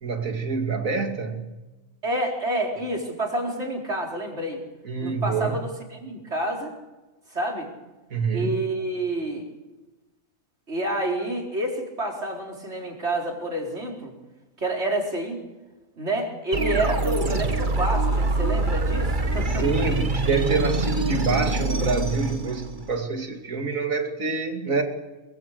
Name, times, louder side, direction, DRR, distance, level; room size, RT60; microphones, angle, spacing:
voice 1, 0.0-1.5 4.8-5.6 8.1-8.6 19.5-24.8, right 4 dB, 75° right, 4 dB, 3.0 m, -26 dB
voice 2, 2.0-4.6 5.0-6.8 7.3-7.7 8.3-9.4 10.7-14.1 14.6-15.4 16.0-19.6, right 1 dB, 55° right, 0 dB, 4.6 m, -28 dB
sound 1, 16.5-23.0, right 2 dB, 35° right, 1.6 m, -25 dB
23.5 x 22.5 x 6.7 m, 1.1 s
omnidirectional pair, 1.4 m